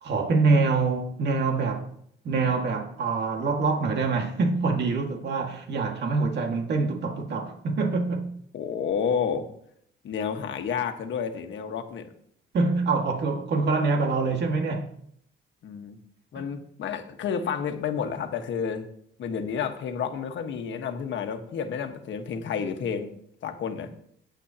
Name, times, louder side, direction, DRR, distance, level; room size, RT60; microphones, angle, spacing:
voice 1, 0.0-1.9 2.2-8.3 12.5-14.9 16.4-16.5, right 4 dB, 60° right, 1.9 m, -25 dB
voice 2, 8.5-9.4 10.0-12.1 15.6-16.0 16.3-18.9 19.2-23.1 23.4-23.9, left 7 dB, 70° left, 1.4 m, -30 dB
18.5 x 8.2 x 2.9 m
cardioid pair, 90°, 20 cm